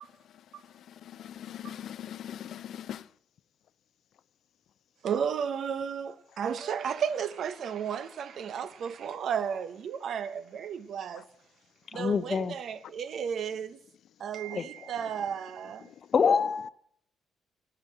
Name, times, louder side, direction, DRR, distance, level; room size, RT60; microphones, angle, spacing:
voice 1, 0.7-3.1, left 10 dB, 70° left, 0.4 m, -41 dB
voice 2, 5.0-11.3 11.9-13.8 14.2-15.9, right 7 dB, 65° right, 0.7 m, -33 dB
voice 3, 11.9-12.5 14.5-14.6 16.1-16.7, left 6 dB, 45° left, 0.7 m, -25 dB
11.0 x 8.8 x 7.5 m
cardioid pair, 90°, 0 cm